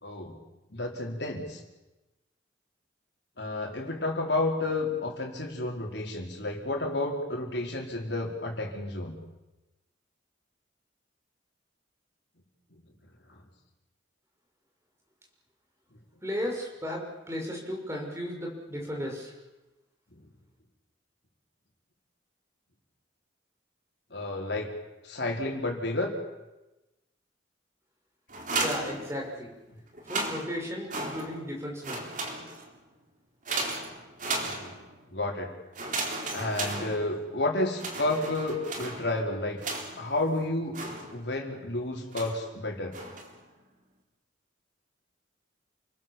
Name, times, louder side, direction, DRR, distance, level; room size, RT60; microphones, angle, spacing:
voice 1, 0.0-0.4 0.7-1.6 3.4-9.2 12.7-12.8 13.3-13.4 20.1-20.3 24.1-24.7 25.0-26.2 34.4-34.7 35.1-35.5 36.3-39.6 40.0-40.8 41.1-43.0, left 2 dB, 60° left, 1 dB, 4.7 m, -31 dB
voice 2, 16.2-19.3 28.6-29.5 30.1-32.0, equal, 15° right, 0 dB, 6.0 m, -35 dB
sound 1, 28.3-29.5 29.9-31.5 31.8-32.8 33.5-35.0 35.7-37.4 37.7-40.2 40.7-41.5 42.1-42.5 42.9-43.4, right 3 dB, 40° right, 3.7 m, -35 dB
29.5 x 20.0 x 7.3 m, 1.0 s
head